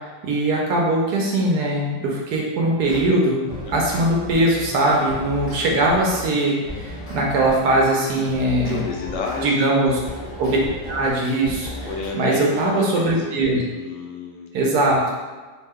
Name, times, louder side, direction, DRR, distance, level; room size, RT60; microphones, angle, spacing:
voice 1, 0.2-3.4 3.7-8.8 9.4-10.0 10.4-10.6 10.9-11.9 12.1-13.6 14.5-15.0, right 1 dB, 75° right, -2 dB, 1.1 m, -20 dB
sound 1, 2.8-3.1 3.5-9.4 9.8-12.1, equal, 60° left, 0.3 m, -35 dB
voice 2, 4.9-5.7 8.6-9.7 11.9-13.3 13.7-14.7, left 4 dB, 90° left, -1 dB, 1.2 m, -31 dB
2.9 x 2.2 x 3.4 m, 1.4 s
omnidirectional pair, 1.8 m